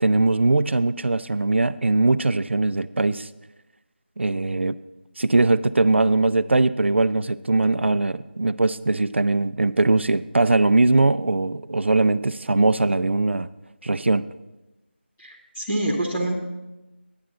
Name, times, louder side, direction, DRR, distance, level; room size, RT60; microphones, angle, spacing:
voice 1, 0.0-3.3 4.2-4.8 5.2-13.5 13.8-14.2, right 2 dB, 75° right, 14 dB, 0.4 m, -20 dB
voice 2, 15.2-16.3, right 1 dB, 5° left, -9 dB, 0.3 m, -26 dB
10.5 x 9.3 x 3.8 m, 1.0 s
figure-of-eight pair, 175°, 6 cm